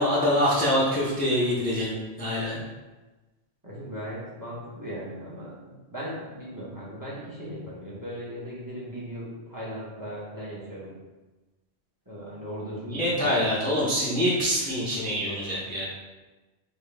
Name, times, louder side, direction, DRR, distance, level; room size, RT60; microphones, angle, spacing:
voice 1, 0.0-2.6 12.8-15.8, equal, 10° left, -7 dB, 0.6 m, -25 dB
voice 2, 3.6-10.9 12.1-13.4, equal, 20° right, -6 dB, 0.9 m, -38 dB
3.8 x 2.8 x 3.3 m, 1.2 s
omnidirectional pair, 1.1 m